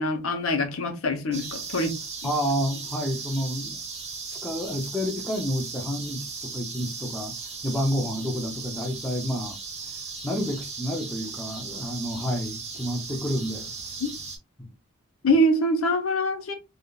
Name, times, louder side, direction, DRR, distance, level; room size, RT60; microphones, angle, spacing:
voice 1, 0.0-2.0 14.0-14.1 15.2-16.5, equal, 75° left, 0.8 m, -24 dB
sound 1, 1.3-14.4, right 4 dB, 30° right, 1.1 m, -37 dB
voice 2, 2.2-3.8 4.3-7.3 7.6-9.6 10.2-13.7 14.6-14.7, equal, 5° left, 0.6 m, -29 dB
3.5 x 2.4 x 2.3 m
head